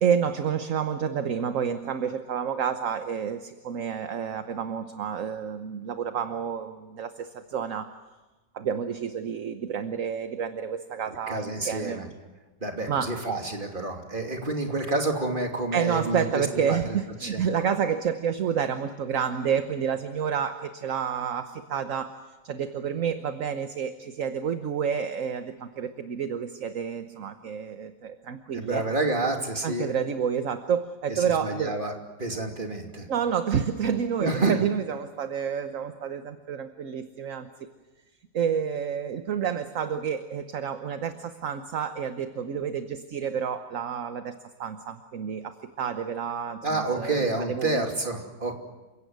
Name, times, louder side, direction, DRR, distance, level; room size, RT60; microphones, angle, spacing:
voice 1, 0.0-7.9 8.5-12.0 12.9-13.2 15.7-22.1 22.4-28.9 29.6-31.8 33.1-37.7 38.3-44.3 44.6-47.9, right 7 dB, 50° right, 9 dB, 1.2 m, -29 dB
voice 2, 11.3-12.1 12.6-17.0 17.2-17.4 28.5-29.9 31.1-31.9 32.2-33.1 34.2-34.6 46.6-48.5, right 2 dB, 25° right, 3 dB, 2.9 m, -29 dB
29.0 x 17.0 x 9.5 m, 1.2 s
omnidirectional pair, 2.0 m